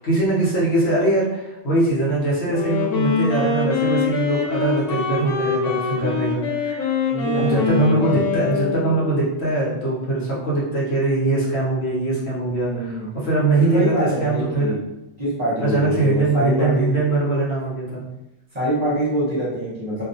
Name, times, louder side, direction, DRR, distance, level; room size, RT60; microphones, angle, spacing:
voice 1, 0.0-6.8 7.4-14.8 15.6-18.0, right 2 dB, 65° left, -6 dB, 1.0 m, -22 dB
Wind instrument woodwind instrument, 2.5-9.2, left 5 dB, 90° left, 1.0 m, -23 dB
voice 2, 7.1-8.2 12.4-13.1 13.6-14.8 15.2-17.0 18.5-20.0, equal, 35° right, -9 dB, 0.9 m, -25 dB
2.4 x 2.2 x 2.6 m, 0.95 s
omnidirectional pair, 1.3 m